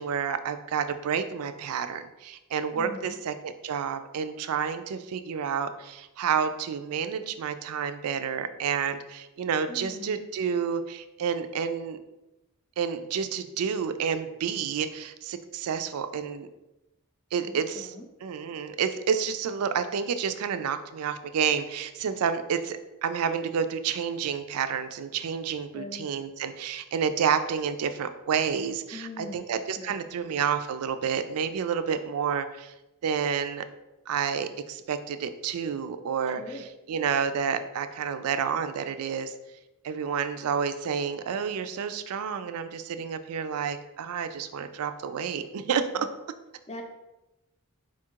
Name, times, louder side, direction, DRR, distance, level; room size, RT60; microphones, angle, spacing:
voice 1, 0.0-12.0 12.8-16.5 17.3-17.9 18.2-32.7 33.0-33.6 34.1-39.3 39.8-46.1, right 7 dB, 70° right, 10 dB, 0.4 m, -29 dB
voice 2, 2.7-3.2 9.7-10.2 17.4-18.1 25.7-26.1 28.9-29.5 29.8-30.1 36.4-36.6 46.7-46.8, left 3 dB, 30° left, 3 dB, 0.5 m, -41 dB
4.4 x 2.4 x 4.4 m, 0.97 s
head